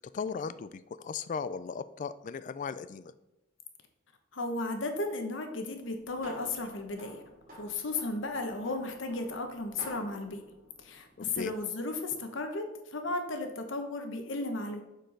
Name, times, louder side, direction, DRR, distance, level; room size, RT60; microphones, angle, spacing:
voice 1, 0.1-3.1 11.2-11.5, left 5 dB, 40° left, 14 dB, 0.3 m, -37 dB
voice 2, 4.3-7.2 7.6-10.4 10.8-14.8, left 2 dB, 70° left, 5 dB, 1.1 m, -35 dB
sound 1, 5.8-11.6, equal, 45° right, 2.5 m, -51 dB
7.6 x 4.6 x 5.2 m, 0.95 s
head